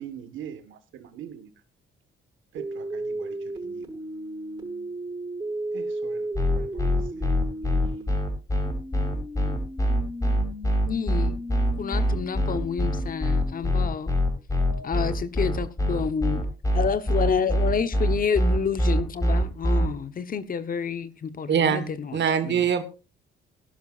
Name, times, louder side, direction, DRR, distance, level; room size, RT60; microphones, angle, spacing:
voice 1, 0.0-1.5 2.5-4.9 5.7-8.2, right 9 dB, 80° right, 1.6 m, -44 dB
sound 1, 2.6-8.0 8.6-13.6 14.6-14.9, right 1 dB, 20° right, 6.3 m, -35 dB
sound 2, 6.3-19.9, equal, 15° left, 5.6 m, -23 dB
voice 2, 10.8-11.4 11.8-14.1 14.8-16.5 16.7-22.7, left 6 dB, 45° left, 1.1 m, -29 dB
voice 3, 21.5-22.8, right 7 dB, 65° right, 1.5 m, -23 dB
18.0 x 11.5 x 2.5 m
cardioid pair, 90°, 20 cm